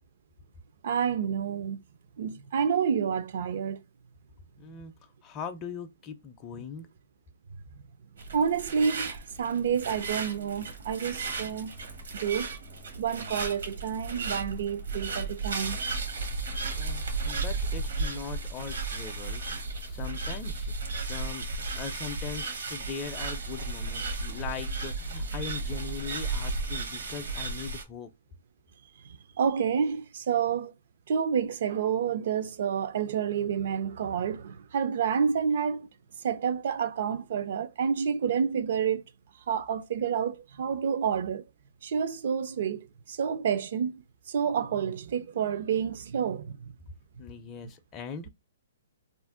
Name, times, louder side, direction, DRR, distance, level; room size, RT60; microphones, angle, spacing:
voice 1, 0.8-1.8 2.2-3.8 8.3-11.7 12.1-12.5 13.0-15.8 29.0-30.7 31.1-35.9 36.2-39.0 39.5-41.4 41.8-44.0 44.3-46.7, right 7 dB, 60° right, 0.4 m, -29 dB
voice 2, 4.6-6.9 16.7-20.7 21.0-21.4 21.7-28.1 47.2-48.3, left 6 dB, 25° left, 0.4 m, -40 dB
sound 1, 8.2-27.8, right 3 dB, 75° right, 0.8 m, -34 dB
2.4 x 2.0 x 3.6 m
hypercardioid pair, 135°, 0 cm